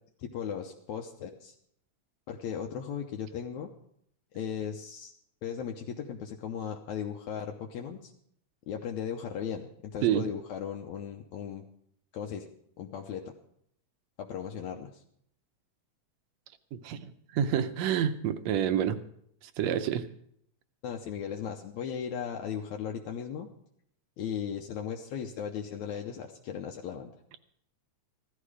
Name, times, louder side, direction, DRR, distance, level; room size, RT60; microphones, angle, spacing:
voice 1, 0.2-1.6 2.3-3.7 4.3-5.1 5.4-8.1 8.7-11.7 12.1-12.5 12.8-13.3 14.2-15.0 20.8-23.5 24.2-27.1, left 8 dB, 75° left, 2 dB, 2.2 m, -37 dB
voice 2, 16.8-19.0 19.6-20.1, right 9 dB, 75° right, 11 dB, 1.9 m, -28 dB
15.5 x 13.0 x 4.9 m, 0.69 s
omnidirectional pair, 3.4 m